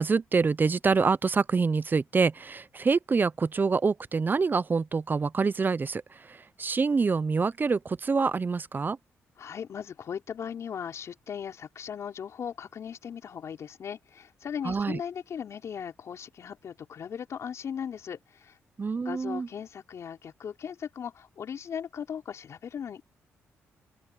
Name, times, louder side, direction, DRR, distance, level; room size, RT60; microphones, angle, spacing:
voice 1, 0.0-6.0 6.3-9.0 14.6-15.0 18.8-19.5, right 4 dB, 35° right, 0.7 m, -26 dB
voice 2, 9.4-18.6 19.0-23.0, left 8 dB, 65° left, 3.9 m, -38 dB
open air
supercardioid pair, 60°, 5 cm